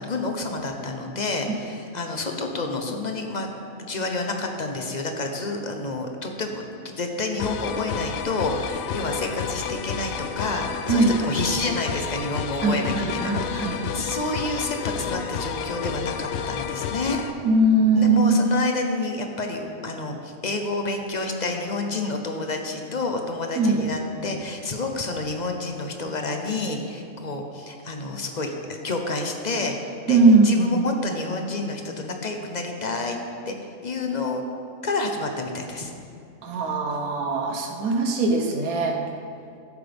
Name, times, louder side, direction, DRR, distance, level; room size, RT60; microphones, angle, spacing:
voice 1, 0.0-3.5 3.8-17.2 17.9-28.5 28.8-33.2 33.5-34.4 34.8-35.9, left 3 dB, 35° left, 3 dB, 0.8 m, -29 dB
sound 1, 7.4-17.3, left 7 dB, 75° left, 1.0 m, -31 dB
voice 2, 12.6-13.8 17.4-18.4 23.6-23.9 30.1-30.7 36.4-39.0, right 3 dB, 85° right, 2 dB, 1.5 m, -20 dB
13.5 x 7.9 x 3.5 m, 2.4 s
omnidirectional pair, 1.5 m